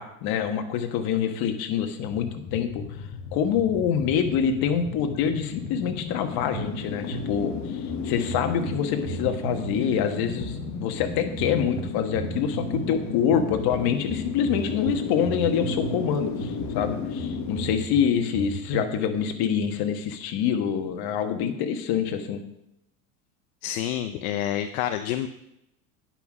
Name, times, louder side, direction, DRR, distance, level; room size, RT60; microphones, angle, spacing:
voice 1, 0.0-2.8 3.3-22.4, left 8 dB, 60° left, 6 dB, 1.5 m, -26 dB
sound 1, 2.1-17.8, left 7 dB, 40° left, 1.3 m, -34 dB
sound 2, 6.5-19.0, right 7 dB, 85° right, 2.1 m, -37 dB
sound 3, 12.3-21.1, right 2 dB, 30° right, 1.8 m, -44 dB
voice 2, 23.6-25.3, left 11 dB, 75° left, 9 dB, 0.7 m, -28 dB
9.7 x 5.8 x 6.1 m, 0.83 s
hypercardioid pair, 90°, 42 cm